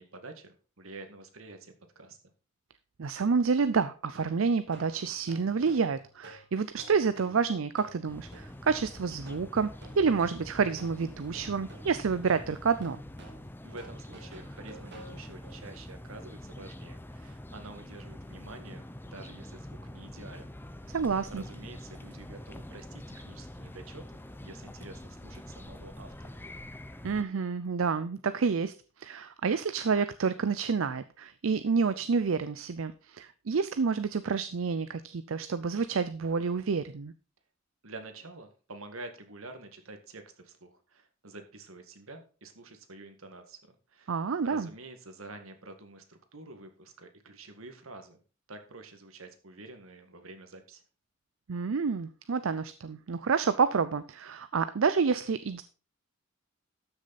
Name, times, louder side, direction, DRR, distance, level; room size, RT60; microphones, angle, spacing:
voice 1, 0.0-2.3 13.6-20.6 20.8-21.0 21.3-26.4 37.8-44.1 44.4-48.2 48.5-50.8, right 2 dB, 90° right, 6 dB, 1.9 m, -48 dB
voice 2, 3.0-13.0 20.9-21.4 27.0-37.1 44.1-44.7 51.5-55.6, right 5 dB, 75° right, 13 dB, 0.5 m, -29 dB
sound 1, 4.1-15.6, right 1 dB, 55° right, 3.5 m, -52 dB
sound 2, 8.1-27.2, left 1 dB, 10° left, 0.6 m, -45 dB
13.0 x 6.5 x 4.1 m, 0.36 s
head